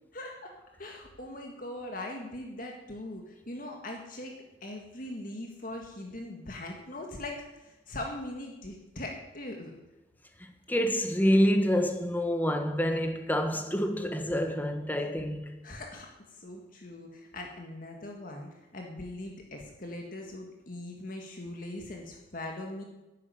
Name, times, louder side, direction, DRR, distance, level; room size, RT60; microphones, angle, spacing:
voice 1, 0.1-9.7 15.6-22.8, left 1 dB, 50° left, 1.9 m, -41 dB
voice 2, 10.4-15.5, equal, 10° left, 1.4 m, -27 dB
11.0 x 11.0 x 9.5 m
head